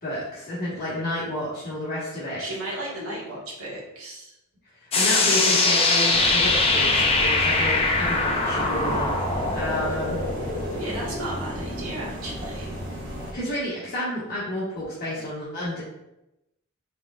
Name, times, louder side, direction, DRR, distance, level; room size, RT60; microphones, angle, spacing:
voice 1, 0.0-2.4 4.9-9.2 9.5-10.2 13.3-15.8, left 1 dB, 45° left, -11 dB, 1.4 m, -30 dB
voice 2, 2.4-4.4 10.8-12.7, right 1 dB, 85° right, -4 dB, 1.4 m, -34 dB
sound 1, 4.9-12.5, left 3 dB, 25° left, 0.6 m, -23 dB
sound 2, 6.1-13.3, equal, 60° right, 1.2 m, -33 dB
4.9 x 3.7 x 2.3 m, 0.89 s
head